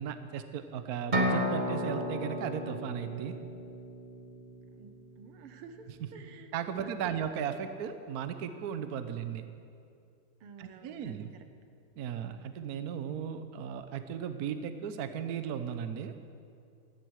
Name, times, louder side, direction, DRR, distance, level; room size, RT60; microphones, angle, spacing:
voice 1, 0.0-3.4 6.0-6.1 6.5-9.4 10.6-11.3 12.0-16.1, right 8 dB, 60° right, 9 dB, 1.0 m, -36 dB
sound 1, 1.1-4.9, equal, 30° right, 0.8 m, -33 dB
voice 2, 4.7-6.5 6.8-7.2 10.4-11.3, right 5 dB, 80° right, 8 dB, 1.9 m, -50 dB
16.0 x 11.0 x 6.4 m, 2.4 s
omnidirectional pair, 2.4 m